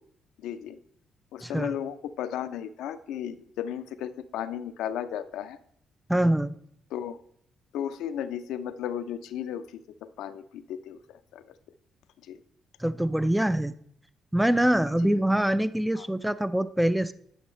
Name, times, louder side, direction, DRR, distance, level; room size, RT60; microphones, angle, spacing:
voice 1, 0.4-0.8 1.3-5.6 6.9-7.2 7.7-9.8 10.2-11.0 11.3-11.4 12.3-12.4 15.0-15.1 16.0-16.1, left 9 dB, 85° left, 11 dB, 0.5 m, -34 dB
voice 2, 1.4-1.8 6.1-6.5 12.8-13.7 14.3-17.1, right 1 dB, 5° right, 14 dB, 0.3 m, -24 dB
10.5 x 6.3 x 3.2 m, 0.67 s
cardioid pair, 90°, 0 cm